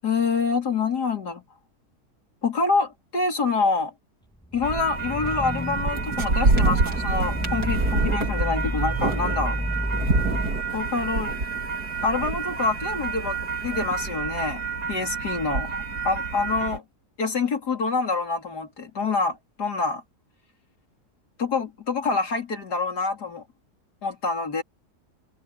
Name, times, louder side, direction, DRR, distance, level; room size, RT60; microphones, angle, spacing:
voice 1, 0.0-1.4 2.4-3.9 4.5-9.6 10.7-11.4 12.0-14.6 14.9-16.8 17.2-20.0 21.4-23.4 24.0-24.6, left 4 dB, 85° left, 4.1 m, -26 dB
sound 1, 4.4-10.6, equal, 5° left, 1.9 m, -31 dB
sound 2, 4.6-16.8, right 3 dB, 80° right, 3.6 m, -27 dB
omnidirectional pair, 1.7 m